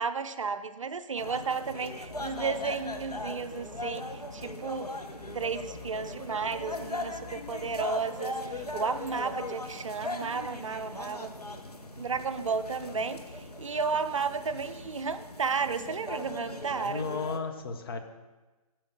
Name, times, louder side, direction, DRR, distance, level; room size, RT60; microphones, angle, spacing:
voice 1, 0.0-4.9 5.3-11.4 12.0-17.1, right 5 dB, 55° right, 11 dB, 0.5 m, -33 dB
sound 1, 1.2-17.4, left 2 dB, 90° left, 0.9 m, -39 dB
sound 2, 2.0-9.2, left 5 dB, 65° left, 1.7 m, -54 dB
voice 2, 16.8-18.0, left 4 dB, 40° left, 5 dB, 0.7 m, -34 dB
8.8 x 4.6 x 6.1 m, 1.2 s
figure-of-eight pair, 135°, 19 cm